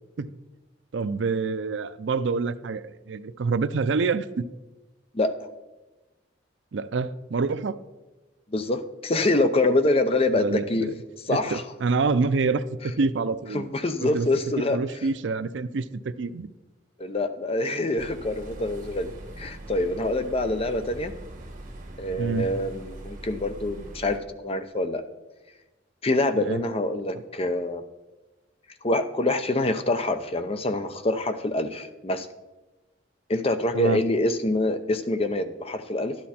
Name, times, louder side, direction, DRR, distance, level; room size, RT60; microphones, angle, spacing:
voice 1, 0.9-4.4 6.7-7.8 10.3-10.9 11.3-13.6 14.0-14.3 14.7-16.5 22.2-22.5 26.4-26.6 33.7-34.0, right 4 dB, 80° right, 13 dB, 0.5 m, -27 dB
voice 2, 8.5-10.9 11.3-11.6 13.5-14.8 17.0-21.1 22.0-24.2 24.4-25.0 26.0-27.8 28.8-32.3 33.3-36.2, left 2 dB, 30° left, 9 dB, 0.7 m, -25 dB
sound 1, 18.0-24.2, right 1 dB, 45° right, 2.2 m, -41 dB
11.5 x 10.5 x 4.3 m, 1.1 s
head